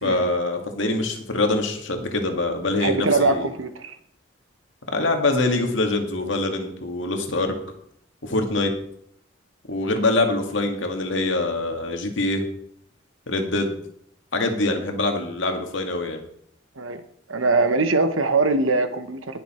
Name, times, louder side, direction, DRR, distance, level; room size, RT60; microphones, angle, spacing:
voice 1, 0.0-3.5 4.9-7.5 8.2-8.7 9.7-12.5 13.3-13.7 14.3-16.2, left 2 dB, 70° left, 4 dB, 2.0 m, -24 dB
voice 2, 2.8-4.0 16.8-17.0 17.3-19.4, right 3 dB, 90° right, 10 dB, 1.2 m, -22 dB
19.0 x 6.9 x 4.4 m, 0.68 s
head